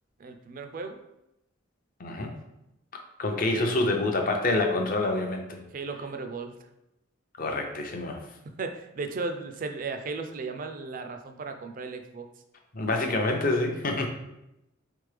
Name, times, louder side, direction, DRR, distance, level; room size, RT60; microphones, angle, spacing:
voice 1, 0.2-1.0 5.7-6.5 8.4-12.3, right 4 dB, 45° right, 6 dB, 0.4 m, -35 dB
voice 2, 2.0-2.3 2.9-5.6 7.4-8.2 12.7-14.1, left 2 dB, 45° left, 3 dB, 0.6 m, -27 dB
4.0 x 3.4 x 3.3 m, 0.87 s
head